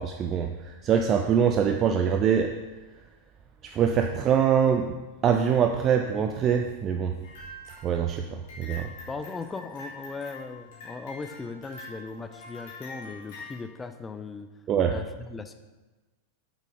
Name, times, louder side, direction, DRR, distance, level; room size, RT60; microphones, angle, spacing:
voice 1, 0.0-2.6 3.6-7.2 7.8-8.9 14.7-15.0, right 7 dB, 30° right, 5 dB, 0.6 m, -24 dB
sound 1, 7.2-13.6, left 2 dB, 50° left, 3.5 m, -45 dB
voice 2, 9.1-14.5 14.8-15.5, left 4 dB, 15° left, 8 dB, 0.6 m, -38 dB
8.2 x 7.7 x 5.1 m, 1.2 s
figure-of-eight pair, 90°, 0 cm